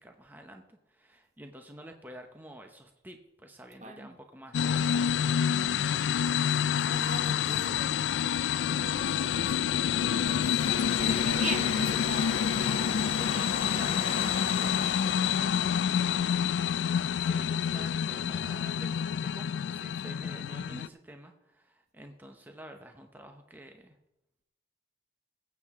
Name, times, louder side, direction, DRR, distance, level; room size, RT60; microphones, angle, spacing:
voice 1, 0.0-5.5 10.9-11.3 12.5-24.0, right 1 dB, 10° right, 0.7 m, -49 dB
voice 2, 3.8-4.2 6.9-8.0 8.8-9.8 10.2-10.7 11.1-12.8 20.7-20.9, right 3 dB, 40° right, 0.9 m, -41 dB
sound 1, 4.5-20.9, left 8 dB, 75° left, 0.3 m, -28 dB
sound 2, 10.6-15.5, left 3 dB, 30° left, 1.1 m, -38 dB
20.0 x 8.2 x 3.6 m
head